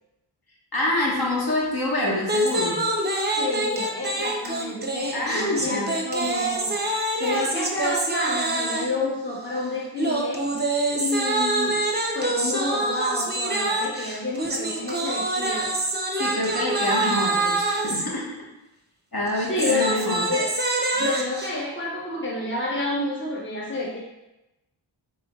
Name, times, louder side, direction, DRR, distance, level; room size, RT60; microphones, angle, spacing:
voice 1, 0.7-2.8 5.1-5.9 16.1-18.4 19.1-20.3, left 1 dB, 50° left, -4 dB, 1.4 m, -26 dB
sound 1, 2.2-9.0 10.0-18.1 19.3-21.5, right 2 dB, 20° right, 0.7 m, -26 dB
voice 2, 3.4-6.8 7.2-10.4 10.9-11.7 12.1-15.7 19.5-20.5 20.9-24.0, left 2 dB, 25° left, -5 dB, 1.1 m, -29 dB
4.8 x 3.9 x 2.4 m, 0.95 s
cardioid pair, 55°, 49 cm